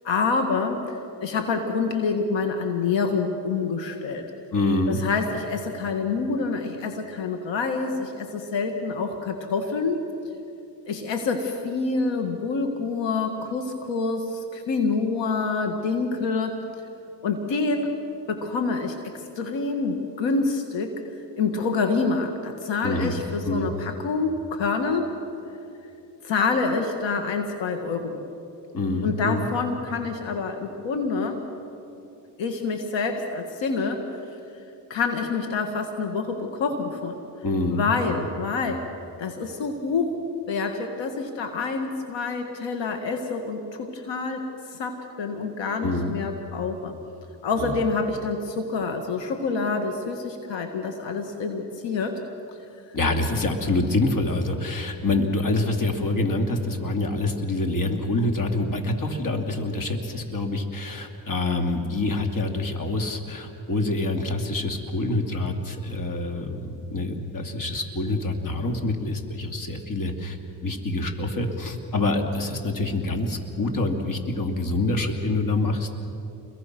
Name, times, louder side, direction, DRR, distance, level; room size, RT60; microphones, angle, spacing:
voice 1, 0.0-4.2 4.9-10.0 10.9-16.6 17.2-17.9 18.3-21.0 21.4-25.1 26.2-28.2 29.0-31.4 32.4-34.1 34.9-37.1 37.7-38.9 39.2-40.2 40.5-44.4 44.7-46.9 47.4-52.2, left 4 dB, 80° left, 5 dB, 2.1 m, -27 dB
voice 2, 4.5-5.0 22.8-23.2 23.4-23.7 28.7-29.5 37.4-38.2 45.8-46.1 47.6-47.7 52.9-75.9, left 2 dB, 45° left, 4 dB, 2.9 m, -26 dB
29.0 x 22.5 x 6.2 m, 2.8 s
cardioid pair, 85°, 44 cm